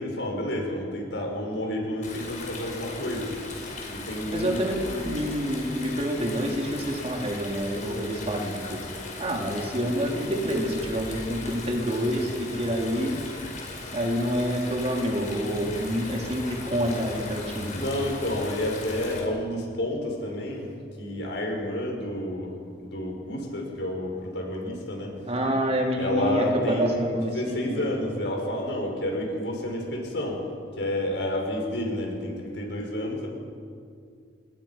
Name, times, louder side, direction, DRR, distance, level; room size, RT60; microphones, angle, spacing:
voice 1, 0.0-3.6 3.9-5.1 17.7-25.2 26.0-30.4 30.7-33.3, left 1 dB, 75° left, 0 dB, 5.9 m, -30 dB
Stream, 2.0-19.2, left 2 dB, 45° left, 5.3 m, -38 dB
voice 2, 4.3-4.8 5.0-8.8 9.2-13.2 13.9-17.7 25.3-27.8, equal, 35° right, 1 dB, 3.3 m, -27 dB
28.5 x 20.0 x 5.9 m, 2.3 s
head